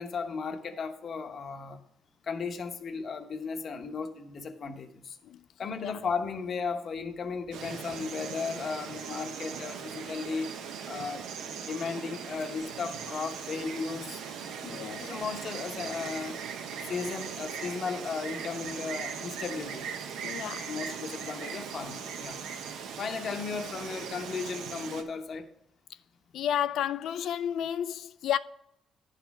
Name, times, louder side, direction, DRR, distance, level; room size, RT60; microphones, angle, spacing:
voice 1, 0.0-1.8 2.2-5.2 5.6-10.5 10.9-11.3 11.6-14.2 15.0-16.4 16.9-19.8 20.4-22.4 23.0-25.5, left 5 dB, 50° left, 0.9 m, -35 dB
Insect, 7.5-25.0, right 7 dB, 85° right, 0.9 m, -39 dB
voice 2, 14.6-15.1 20.2-20.7 26.3-28.4, left 10 dB, 75° left, 0.3 m, -32 dB
10.0 x 4.1 x 5.9 m
cardioid pair, 90°, 0 cm